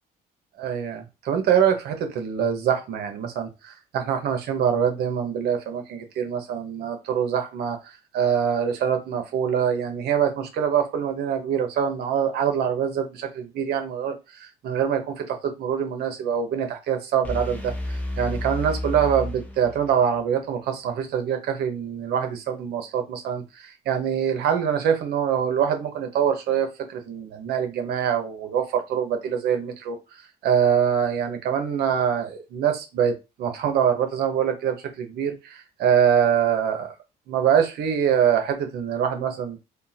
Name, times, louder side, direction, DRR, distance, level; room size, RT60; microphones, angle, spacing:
voice 1, 0.6-36.9 37.3-39.6, right 8 dB, 70° right, 6 dB, 0.9 m, -24 dB
sound 1, 17.2-20.2, left 1 dB, 10° left, 0.7 m, -31 dB
3.6 x 2.3 x 2.8 m, 0.26 s
cardioid pair, 110°, 17 cm